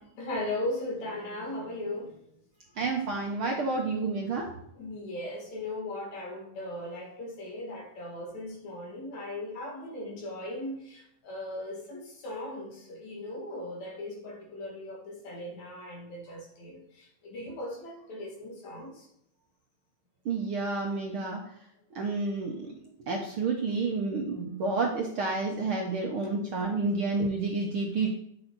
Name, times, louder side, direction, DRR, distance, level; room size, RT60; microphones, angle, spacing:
voice 1, 0.2-2.3 4.2-4.4 4.7-19.1 26.8-26.9, left 1 dB, 65° left, -1 dB, 3.5 m, -38 dB
voice 2, 2.8-4.5 20.2-21.4 21.9-22.7 23.1-28.1, right 3 dB, 60° right, 0 dB, 1.5 m, -29 dB
9.9 x 6.4 x 4.1 m, 0.75 s
omnidirectional pair, 3.5 m